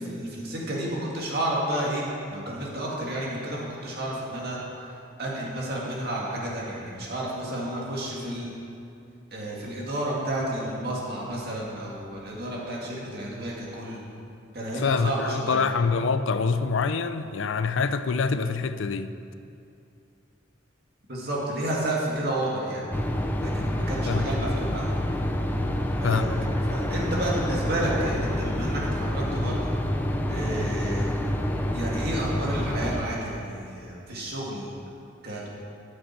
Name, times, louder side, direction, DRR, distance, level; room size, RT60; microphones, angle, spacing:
voice 1, 0.0-2.0 2.3-4.9 5.2-8.5 9.3-14.0 14.5-15.7 21.1-22.9 23.4-24.9 26.0-29.7 30.3-31.2 31.7-34.7 35.2-35.5, right 1 dB, 50° right, -4 dB, 2.1 m, -31 dB
voice 2, 14.7-19.1 24.1-24.3 26.0-26.6, left 5 dB, 75° left, 11 dB, 0.5 m, -26 dB
sound 1, 22.9-33.0, left 1 dB, 10° left, 0.5 m, -27 dB
13.0 x 7.7 x 4.4 m, 2.6 s
head